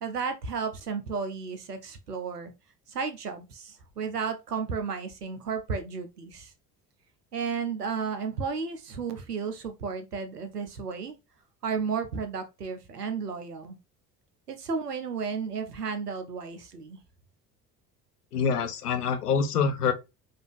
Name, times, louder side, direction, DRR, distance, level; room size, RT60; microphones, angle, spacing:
voice 1, 0.0-2.5 2.9-6.5 7.3-11.2 11.6-13.8 14.5-17.0, right 5 dB, 85° right, 0.8 m, -33 dB
voice 2, 18.3-19.9, left 6 dB, 80° left, 0.8 m, -25 dB
5.1 x 2.8 x 3.6 m
figure-of-eight pair, 60°, 46 cm